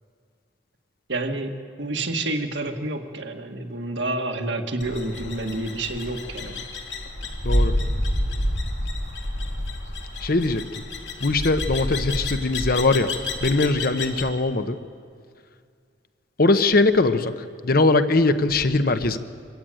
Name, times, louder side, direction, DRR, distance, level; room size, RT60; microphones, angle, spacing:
voice 1, 1.1-1.5 1.8-6.6, right 2 dB, 75° right, 4 dB, 1.8 m, -29 dB
sound 1, 4.8-14.3, left 1 dB, 75° left, 2.5 m, -28 dB
voice 2, 10.2-10.6 11.2-13.1 13.4-14.8 16.4-19.2, left 2 dB, 55° left, 10 dB, 1.0 m, -21 dB
24.5 x 15.5 x 9.1 m, 2.2 s
head